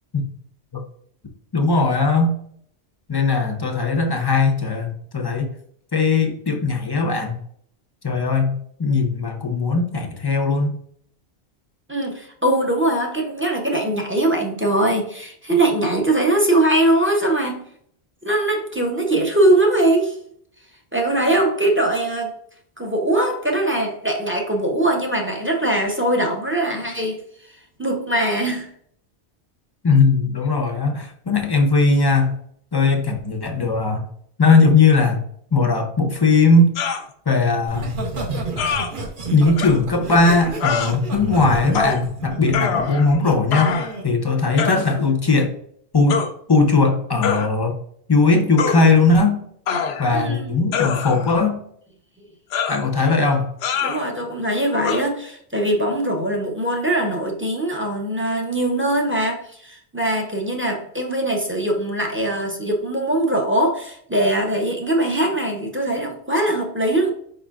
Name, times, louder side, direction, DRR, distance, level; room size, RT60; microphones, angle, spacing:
voice 1, 1.5-2.4 3.1-5.5 5.9-7.3 8.0-10.8 29.8-32.3 32.7-34.0 34.4-35.2 35.5-36.7 37.3-37.9 39.3-43.8 44.0-45.5 45.9-47.8 48.1-49.4 50.0-51.6 52.7-53.5, left 3 dB, 30° left, 3 dB, 0.5 m, -18 dB
voice 2, 11.9-17.6 18.2-20.2 20.9-22.3 22.8-27.2 27.4-28.7 50.1-50.6 53.8-67.1, right 1 dB, 15° right, 0 dB, 0.6 m, -21 dB
sound 1, 36.8-37.0 38.6-38.9 39.6-39.7 40.6-40.9 41.7-42.0 42.5-43.2 43.5-44.0 44.6-44.8 46.1-46.3 47.2-47.5 48.6-48.8 49.7-50.2 50.7-51.3 52.5-52.8 53.6-54.0 54.8-55.0, left 6 dB, 75° left, 0.8 m, -24 dB
Laughter, 37.7-43.3 43.8-44.1, right 3 dB, 50° right, 1.0 m, -29 dB
5.0 x 4.0 x 2.4 m, 0.64 s
omnidirectional pair, 1.1 m